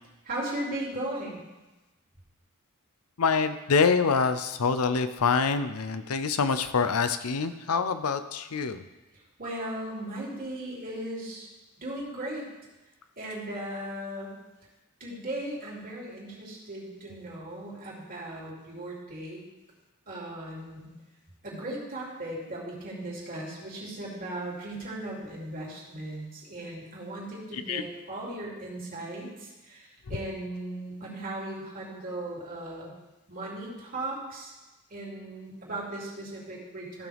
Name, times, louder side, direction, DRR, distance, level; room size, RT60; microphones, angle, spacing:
voice 1, 0.2-1.4 9.4-11.5 11.8-12.5 13.2-14.3 15.0-19.4 20.1-20.9 21.4-32.9 33.3-34.5 34.9-37.1, right 1 dB, 40° right, -5 dB, 3.0 m, -37 dB
voice 2, 3.2-8.8 27.5-27.8, left 5 dB, 80° left, 10 dB, 0.6 m, -26 dB
14.5 x 6.2 x 3.5 m, 1.1 s
head